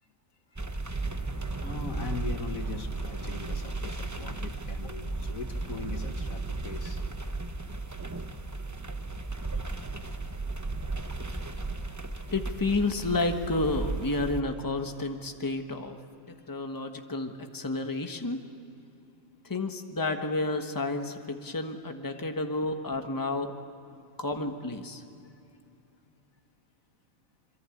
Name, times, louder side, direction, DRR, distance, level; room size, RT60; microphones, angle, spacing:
sound 1, 0.6-14.4, right 3 dB, 15° right, 0.8 m, -35 dB
voice 1, 1.0-7.0 9.4-9.9 11.1-11.4 12.1-12.3 23.9-24.0, left 4 dB, 90° left, 6 dB, 2.1 m, -41 dB
voice 2, 12.3-16.0 16.5-18.4 19.5-23.5 24.2-25.0, left 2 dB, 15° left, 5 dB, 1.3 m, -30 dB
26.0 x 23.5 x 8.6 m, 2.7 s
omnidirectional pair, 1.4 m